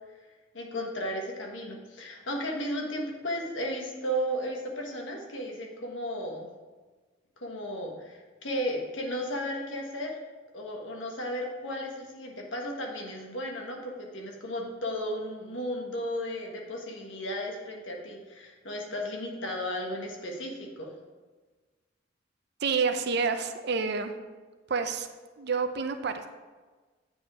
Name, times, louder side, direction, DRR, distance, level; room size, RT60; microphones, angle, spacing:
voice 1, 0.5-6.5 7.4-10.1 10.5-20.9, equal, 75° left, 0 dB, 1.4 m, -34 dB
voice 2, 22.6-24.1 24.7-25.1 25.4-26.3, right 5 dB, 55° right, 8 dB, 0.6 m, -28 dB
8.5 x 4.8 x 4.9 m, 1.3 s
head